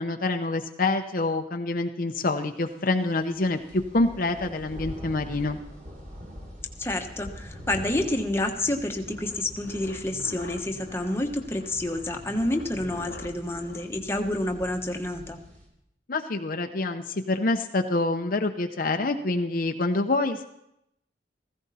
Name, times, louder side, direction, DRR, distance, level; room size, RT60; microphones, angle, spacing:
voice 1, 0.0-5.6 16.1-20.5, left 2 dB, 50° left, 5 dB, 0.8 m, -26 dB
sound 1, 3.0-15.7, equal, 45° right, 3.6 m, -45 dB
sound 2, 6.6-15.3, left 2 dB, 80° left, 1.1 m, -47 dB
voice 2, 6.8-15.4, left 1 dB, 15° left, 3 dB, 1.2 m, -29 dB
16.0 x 15.5 x 4.2 m, 0.79 s
head